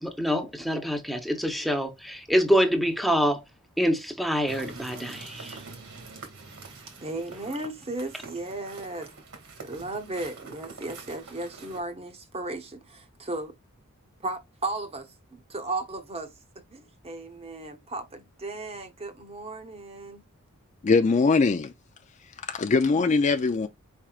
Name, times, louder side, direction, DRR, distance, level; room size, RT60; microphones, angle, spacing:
voice 1, 0.0-3.4 3.8-5.6, equal, ahead, 0.8 m, -26 dB
sound 1, 4.5-11.8, right 4 dB, 70° right, 1.9 m, -44 dB
voice 2, 7.0-9.1 9.6-13.5 14.2-16.3 16.7-20.2, right 2 dB, 25° right, 0.9 m, -35 dB
voice 3, 20.8-21.7 22.5-23.7, left 4 dB, 30° left, 0.3 m, -21 dB
4.8 x 4.4 x 2.4 m
head